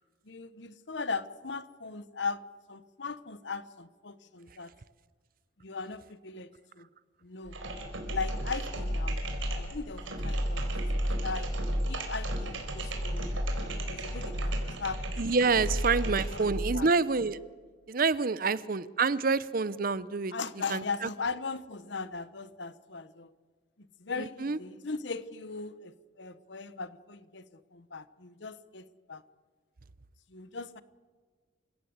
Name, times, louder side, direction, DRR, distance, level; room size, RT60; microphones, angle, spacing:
voice 1, 0.2-2.4 2.7-4.7 5.6-6.9 7.2-7.6 8.1-9.2 9.5-13.4 13.9-15.5 16.3-16.9 18.4-18.5 20.3-23.3 23.8-29.2 30.3-30.8, left 4 dB, 65° left, 15 dB, 1.1 m, -39 dB
sound 1, 7.4-16.8, equal, 85° right, 4.5 m, -32 dB
voice 2, 15.2-17.4 17.9-20.3 20.7-20.8 24.4-24.6, right 4 dB, 45° right, 18 dB, 0.7 m, -27 dB
28.0 x 16.5 x 8.0 m, 1.5 s
head